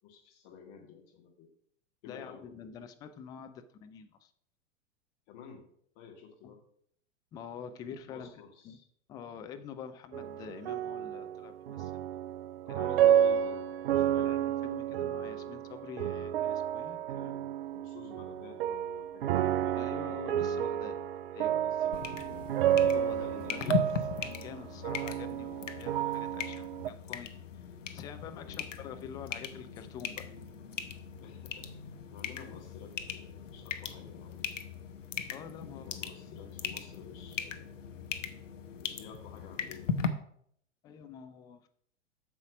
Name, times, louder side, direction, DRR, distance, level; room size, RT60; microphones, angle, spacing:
voice 1, 0.0-1.5 2.0-2.5 5.3-5.7 5.9-6.6 8.1-8.9 12.7-14.4 17.1-20.0 21.6-22.5 23.2-24.1 28.4-28.6 31.2-31.7 32.1-34.5 35.6-37.7 38.8-39.9, left 7 dB, 40° left, 3 dB, 1.9 m, -51 dB
voice 2, 2.1-4.3 6.4-6.5 7.3-8.3 8.6-8.8 9.1-11.9 12.7-12.9 14.2-17.3 19.8-21.0 21.3-21.7 22.9-23.7 24.2-27.4 27.9-30.3 35.3-36.0 40.8-41.7, left 7 dB, 10° left, 9 dB, 0.3 m, -46 dB
sound 1, 10.1-26.9, right 10 dB, 50° right, 0.5 m, -31 dB
sound 2, 21.9-40.1, left 6 dB, 70° left, 1.0 m, -39 dB
8.0 x 7.1 x 5.0 m, 0.67 s
figure-of-eight pair, 95°, 39 cm